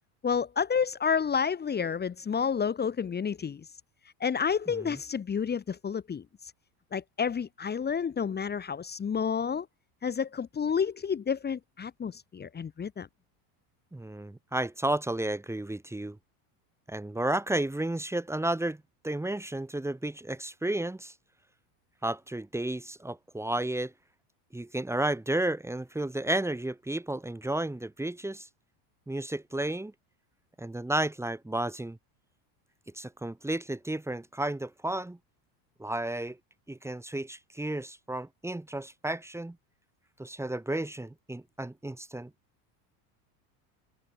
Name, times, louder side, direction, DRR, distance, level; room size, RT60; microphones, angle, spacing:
voice 1, 0.2-3.7 4.2-6.2 6.9-9.7 10.0-13.1, left 6 dB, 20° left, 1.9 m, -30 dB
voice 2, 13.9-16.2 16.9-18.8 19.0-21.1 22.0-23.9 24.5-28.5 29.1-29.9 30.6-32.0 32.9-35.2 35.8-36.4 36.7-39.6 40.2-42.3, right 1 dB, 5° right, 4.1 m, -32 dB
supercardioid pair, 130°, 47 cm